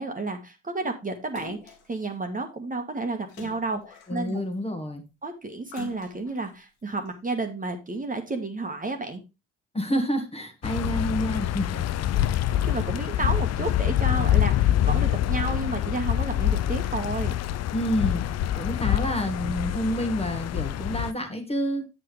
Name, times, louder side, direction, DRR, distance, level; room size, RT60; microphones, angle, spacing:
voice 1, 0.0-4.4 5.2-9.2 12.7-17.4, right 3 dB, 25° right, 5 dB, 1.6 m, -31 dB
Splash splatter, 1.3-1.9 3.3-4.5 5.7-6.5 7.1-7.2, left 7 dB, 80° left, 1.8 m, -44 dB
voice 2, 4.1-5.0 9.7-11.8 12.2-12.3 17.7-21.9, equal, 15° left, 5 dB, 1.6 m, -28 dB
sound 1, 10.6-21.1, left 12 dB, 45° left, 0.6 m, -25 dB
7.8 x 7.4 x 3.3 m, 0.26 s
hypercardioid pair, 50°, 35 cm